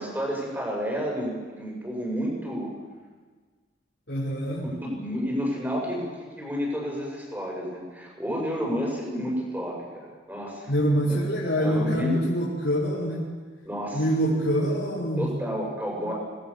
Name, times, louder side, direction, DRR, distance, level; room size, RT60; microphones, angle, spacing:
voice 1, 0.0-2.7 4.8-10.7 11.6-12.2 13.6-14.0 15.2-16.1, equal, 10° right, -2 dB, 6.8 m, -30 dB
voice 2, 4.1-4.7 10.7-13.2 13.9-15.3, equal, 70° left, -8 dB, 5.5 m, -25 dB
27.0 x 21.0 x 7.2 m, 1.4 s
head